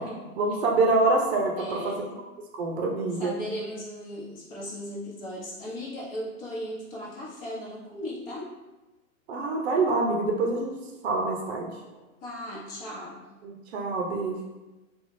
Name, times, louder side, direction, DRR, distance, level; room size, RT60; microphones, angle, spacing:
voice 1, 0.4-1.9 2.6-3.3 9.3-10.7 11.0-11.7 13.4-14.4, right 3 dB, 50° right, 0 dB, 0.5 m, -25 dB
voice 2, 1.6-2.2 3.2-8.5 12.2-13.3, equal, 40° left, -5 dB, 0.9 m, -37 dB
2.4 x 2.3 x 3.2 m, 1.1 s
hypercardioid pair, 135°, 42 cm